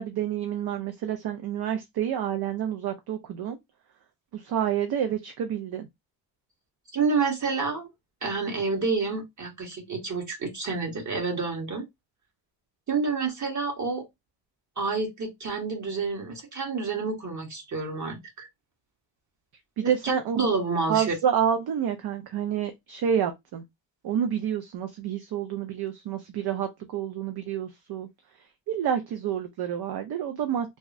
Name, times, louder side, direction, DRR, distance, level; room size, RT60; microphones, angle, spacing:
voice 1, 0.0-3.6 4.3-5.9 19.8-20.5 20.9-23.6 24.0-28.1 28.4-30.8, right 9 dB, 65° right, 0.6 m, -28 dB
voice 2, 6.9-7.9 8.2-11.8 12.9-14.0 14.8-18.5 19.8-21.0, right 4 dB, 45° right, 1.5 m, -29 dB
3.4 x 2.1 x 2.6 m
cardioid pair, 65°, 42 cm